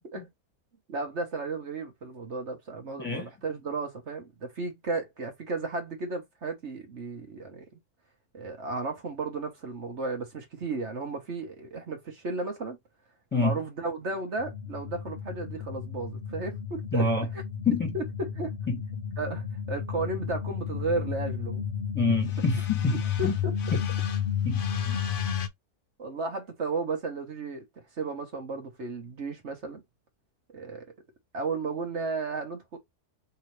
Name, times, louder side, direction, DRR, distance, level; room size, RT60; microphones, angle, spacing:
voice 1, 0.9-7.6 8.3-12.8 13.3-17.4 17.9-18.5 19.2-21.7 23.2-23.8 26.0-27.6 28.0-29.8 30.5-30.9 31.3-32.8, right 3 dB, 50° right, 1.4 m, -34 dB
voice 2, 3.0-3.3 13.3-13.6 16.9-17.3 17.6-17.9 18.7-18.8 21.9-23.3 23.7-23.8 24.4-25.0, left 3 dB, 5° left, 1.7 m, -27 dB
sound 1, 14.4-25.5, left 8 dB, 65° left, 0.5 m, -32 dB
4.6 x 3.0 x 3.2 m
omnidirectional pair, 1.6 m